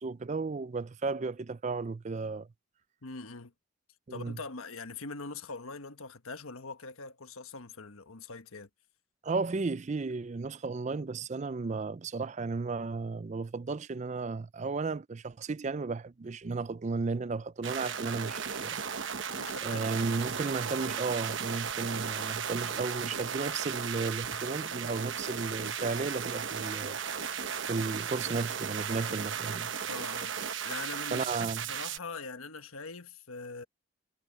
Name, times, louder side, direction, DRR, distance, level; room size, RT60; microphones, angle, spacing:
voice 1, 0.0-2.5 4.1-4.4 9.2-19.0 19.6-27.2 27.7-29.7 31.1-31.6, right 4 dB, 35° right, 0.4 m, -34 dB
voice 2, 3.0-3.5 4.1-8.7 19.4-19.9 29.8-30.4 30.6-33.6, left 3 dB, 85° left, 1.4 m, -42 dB
sound 1, 17.6-32.0, right 7 dB, 60° right, 1.1 m, -35 dB
head